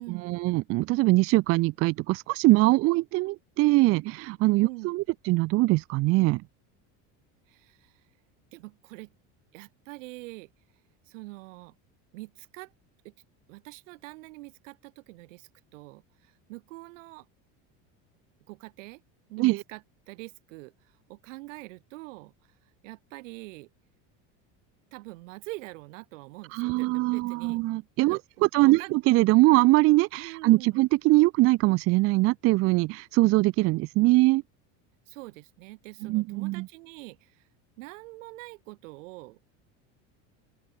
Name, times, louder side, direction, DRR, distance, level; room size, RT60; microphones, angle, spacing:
voice 1, 0.0-6.4 19.4-19.6 26.5-34.4 36.0-36.7, right 21 dB, 40° right, 0.5 m, -22 dB
voice 2, 4.6-4.9 7.5-8.0 8.5-9.1 9.5-10.5 11.1-11.7 12.1-12.7 13.0-13.1 13.5-17.3 18.5-19.0 19.3-22.3 22.8-23.7 24.9-27.6 28.0-28.9 30.2-30.8 35.1-37.5 37.8-39.5, right 23 dB, 90° right, 6.1 m, -44 dB
open air
cardioid pair, 155°, 36 cm